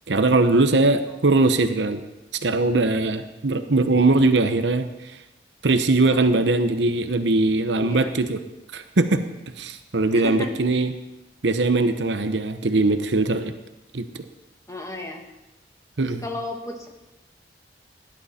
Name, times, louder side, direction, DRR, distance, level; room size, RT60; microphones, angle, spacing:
voice 1, 0.1-2.0 2.4-4.9 5.6-8.4 8.7-9.2 9.6-10.9 11.4-13.5 13.9-14.1 16.0-16.2, right 2 dB, 75° right, 9 dB, 0.9 m, -20 dB
voice 2, 7.8-8.1 10.1-10.8 14.7-15.2 16.0-16.9, left 1 dB, 20° left, 2 dB, 1.7 m, -33 dB
17.0 x 10.5 x 4.3 m, 1.0 s
head